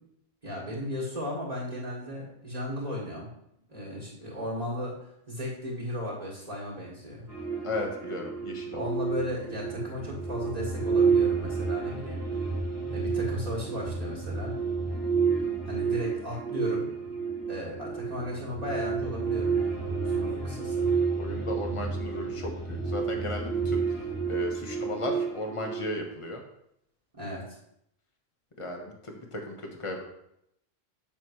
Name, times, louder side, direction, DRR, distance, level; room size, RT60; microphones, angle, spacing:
voice 1, 0.4-3.3 3.7-7.3 8.7-12.2 12.9-14.5 15.6-16.9 17.5-20.9 27.1-27.6, left 1 dB, 35° right, -6 dB, 2.1 m, -35 dB
sound 1, 7.3-26.2, right 5 dB, 15° left, 1.8 m, -30 dB
voice 2, 7.6-8.9 20.2-20.3 21.1-24.0 24.3-26.4 28.6-30.0, left 1 dB, 30° left, 2 dB, 1.2 m, -35 dB
8.9 x 6.8 x 3.1 m, 0.76 s
omnidirectional pair, 1.1 m